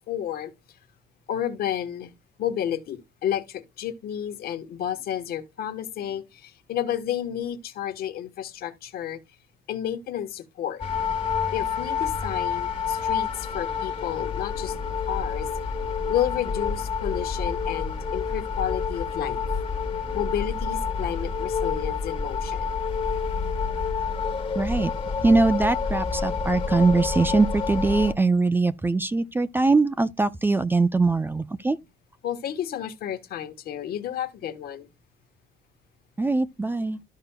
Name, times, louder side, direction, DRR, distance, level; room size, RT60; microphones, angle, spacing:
voice 1, 0.1-0.5 1.3-2.1 2.4-9.2 9.7-10.8 11.5-15.5 16.1-19.4 20.1-22.7 32.2-34.9, left 10 dB, 65° left, 1.2 m, -31 dB
sound 1, 10.8-28.1, left 5 dB, 30° left, 1.3 m, -28 dB
voice 2, 24.6-24.9 25.2-31.8 36.2-37.0, right 3 dB, 10° right, 0.4 m, -22 dB
12.5 x 5.5 x 2.2 m
cardioid pair, 110°, 17 cm